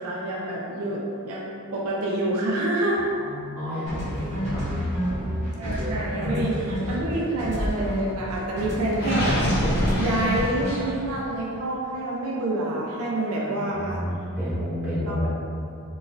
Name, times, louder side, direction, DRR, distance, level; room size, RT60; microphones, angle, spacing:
voice 1, 0.0-3.0 5.6-14.0 15.1-15.2, right 1 dB, 75° right, -3 dB, 0.4 m, -27 dB
voice 2, 3.1-4.7 5.0-5.1 13.4-15.3, equal, 10° right, -14 dB, 1.2 m, -30 dB
sound 1, 3.9-8.3 8.6-10.9, equal, 30° right, 1.0 m, -29 dB
Gurgling, 8.9-11.1, equal, 45° left, 0.6 m, -26 dB
3.8 x 2.4 x 2.5 m, 2.6 s
head